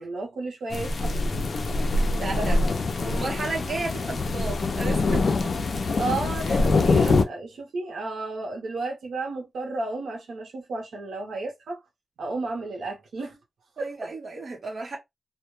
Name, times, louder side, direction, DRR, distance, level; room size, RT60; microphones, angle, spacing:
voice 1, 0.0-1.5 2.3-2.5 6.0-11.8 12.2-13.4 13.8-14.1, right 3 dB, 85° right, 0.6 m, -33 dB
sound 1, 0.7-7.2, left 3 dB, 55° left, 0.4 m, -24 dB
voice 2, 1.8-2.6 3.0-5.5 6.5-6.6 13.8-15.0, right 3 dB, 45° right, 0.8 m, -34 dB
2.1 x 2.0 x 2.9 m
wide cardioid pair, 125°, 0 cm